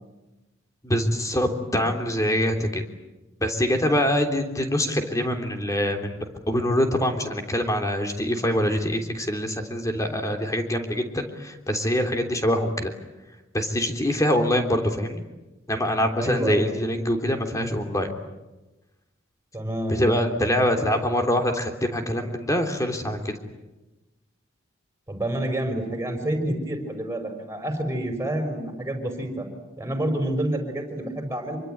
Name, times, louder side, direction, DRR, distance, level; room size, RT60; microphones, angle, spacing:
voice 1, 0.8-2.8 3.4-6.2 6.5-12.9 13.5-15.2 15.7-18.1 19.9-23.3, equal, 15° left, 5 dB, 3.3 m, -24 dB
voice 2, 16.2-16.8 19.5-20.1 25.1-29.5 29.8-31.6, right 1 dB, 15° right, 4 dB, 5.6 m, -28 dB
26.5 x 24.0 x 9.4 m, 1.1 s
head